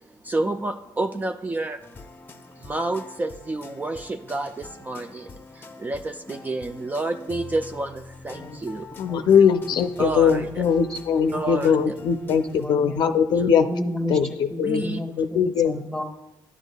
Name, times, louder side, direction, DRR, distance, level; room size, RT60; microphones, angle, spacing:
voice 1, 0.2-1.8 2.6-8.9 10.0-10.6 11.3-12.0 13.3-13.5 14.6-15.0, right 2 dB, 20° right, 7 dB, 0.4 m, -29 dB
sound 1, 1.8-12.7, left 4 dB, 25° left, 0.7 m, -44 dB
voice 2, 9.0-13.7 14.1-15.8, left 7 dB, 60° left, 8 dB, 0.5 m, -21 dB
voice 3, 11.7-12.3 12.6-13.1 13.7-14.2 14.5-16.0, left 1 dB, 5° left, 5 dB, 1.3 m, -32 dB
12.0 x 8.1 x 2.2 m, 0.91 s
cardioid pair, 90°, 8 cm